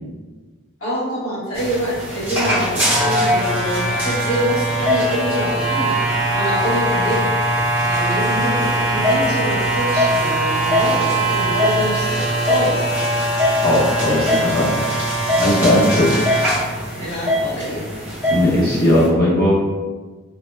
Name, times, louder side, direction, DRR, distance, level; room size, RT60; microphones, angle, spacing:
voice 1, 0.8-5.9 6.3-7.3 7.9-12.9 16.9-17.8, equal, 85° left, -10 dB, 1.5 m, -25 dB
sound 1, 1.5-19.1, equal, 10° right, 0.7 m, -20 dB
voice 2, 13.6-14.8 15.4-16.3 18.3-19.6, left 1 dB, 45° left, -6 dB, 0.9 m, -17 dB
4.1 x 2.1 x 3.3 m, 1.3 s
head